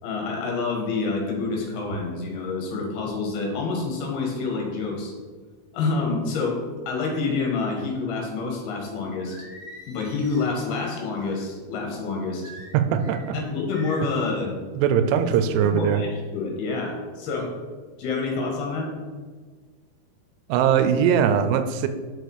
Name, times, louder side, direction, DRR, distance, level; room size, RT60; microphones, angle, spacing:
voice 1, 0.0-5.1 5.7-9.5 9.9-12.4 13.3-14.5 15.6-17.5 18.0-18.9, left 4 dB, 70° left, 0 dB, 3.4 m, -28 dB
Singing, 9.2-11.4 12.4-13.2 13.7-14.2, equal, 65° right, 0.5 m, -45 dB
voice 2, 12.7-13.4 14.8-16.0 20.5-21.9, right 8 dB, 90° right, 9 dB, 2.7 m, -21 dB
6.6 x 6.6 x 4.8 m, 1.4 s
omnidirectional pair, 4.8 m